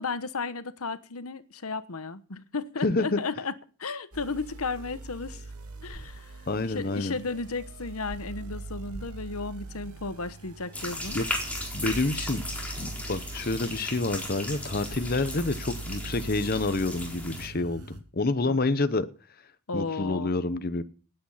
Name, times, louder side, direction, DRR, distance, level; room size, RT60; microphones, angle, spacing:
voice 1, 0.0-3.5 3.8-5.4 5.8-11.2 18.4-18.6 19.7-20.3, left 4 dB, 80° left, 14 dB, 1.1 m, -34 dB
voice 2, 2.8-3.2 6.5-7.2 11.1-11.2 11.7-12.4 12.8-19.1 19.7-20.8, left 2 dB, 40° left, 11 dB, 0.8 m, -28 dB
sound 1, 4.1-18.0, right 3 dB, 85° right, 2.7 m, -42 dB
sound 2, 5.9-6.0 8.1-8.2 8.9-9.0 11.1-11.2 11.9-12.0 14.1-14.2 14.9-15.0, equal, 25° left, 4.6 m, -43 dB
sound 3, 10.7-17.5, left 1 dB, 5° left, 4.1 m, -36 dB
19.0 x 8.9 x 5.7 m, 0.38 s
head